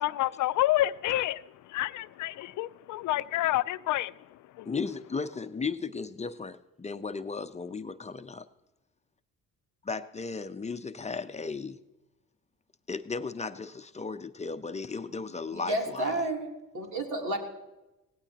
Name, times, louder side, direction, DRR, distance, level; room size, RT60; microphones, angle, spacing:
voice 1, 0.0-4.1 4.6-4.7, left 15 dB, 80° left, 0.5 m, -29 dB
voice 2, 4.7-8.4 9.8-11.8 12.9-16.1, left 4 dB, 25° left, 0.6 m, -35 dB
voice 3, 15.5-16.5 16.7-17.4, right 1 dB, 80° right, 3.2 m, -30 dB
17.5 x 17.5 x 2.9 m
cardioid pair, 90°, 30 cm